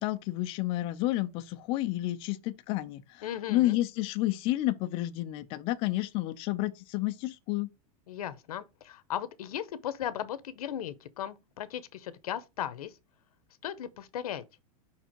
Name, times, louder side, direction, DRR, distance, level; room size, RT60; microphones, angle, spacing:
voice 1, 0.0-7.7, left 16 dB, 30° left, 0.4 m, -30 dB
voice 2, 3.2-3.8 8.1-12.9 13.6-14.4, left 10 dB, 90° left, 0.9 m, -37 dB
5.5 x 4.5 x 4.5 m
supercardioid pair, 160°, 19 cm